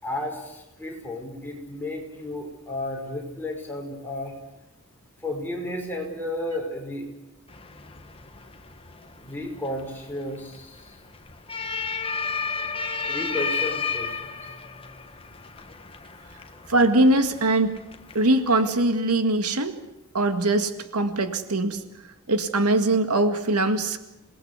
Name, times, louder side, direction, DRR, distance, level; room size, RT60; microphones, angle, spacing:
voice 1, 0.0-4.3 5.2-7.1 9.2-11.0 13.1-14.5, left 1 dB, 10° left, 0 dB, 5.4 m, -33 dB
sound 1, 7.5-18.7, left 5 dB, 25° left, 1.4 m, -33 dB
voice 2, 16.7-17.8 18.1-19.8 20.1-21.8 22.3-24.0, right 2 dB, 90° right, 8 dB, 2.0 m, -22 dB
28.0 x 19.5 x 8.3 m, 0.94 s
head